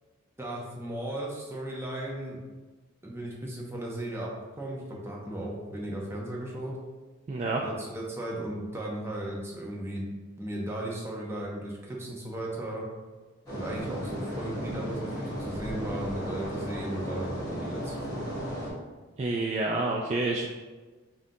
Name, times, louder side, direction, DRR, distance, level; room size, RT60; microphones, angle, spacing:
voice 1, 0.4-2.4 3.0-4.3 4.6-6.7 7.6-10.1 10.4-12.9 13.5-18.2, right 1 dB, 10° right, -3 dB, 0.7 m, -36 dB
voice 2, 7.3-7.6 19.2-20.5, right 2 dB, 30° right, -2 dB, 0.3 m, -28 dB
sound 1, 13.5-18.7, equal, 20° left, 1.5 m, -35 dB
5.5 x 2.5 x 2.7 m, 1.3 s
head